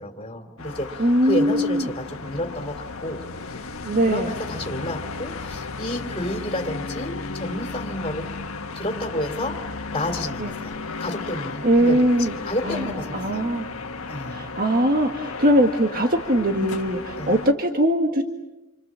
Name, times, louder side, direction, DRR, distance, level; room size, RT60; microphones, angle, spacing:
voice 1, 0.0-3.2 3.5-3.7 4.1-8.3 8.7-9.6 9.9-13.5 14.1-14.5 17.2-17.3, left 1 dB, 25° left, 3 dB, 3.0 m, -31 dB
sound 1, 0.6-17.5, left 3 dB, 80° left, 1.5 m, -34 dB
voice 2, 1.0-1.9 3.8-4.3 10.4-10.5 11.6-12.3 12.6-13.7 14.3-18.2, equal, 45° right, 4 dB, 1.7 m, -21 dB
28.5 x 26.5 x 7.5 m, 1.0 s
head